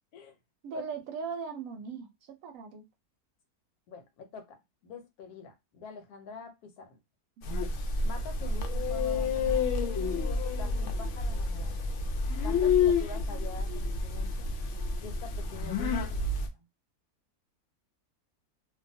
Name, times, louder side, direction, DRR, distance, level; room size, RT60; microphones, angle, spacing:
voice 1, 0.6-2.8 7.4-7.5, right 5 dB, 70° right, 0.9 m, -39 dB
voice 2, 3.9-4.6 4.8-7.0 8.0-9.7 10.2-11.8 12.4-14.5 15.0-16.3, left 5 dB, 85° left, 1.2 m, -45 dB
sound 1, 7.4-16.5, left 4 dB, 65° left, 0.8 m, -29 dB
2.6 x 2.2 x 2.6 m
omnidirectional pair, 1.6 m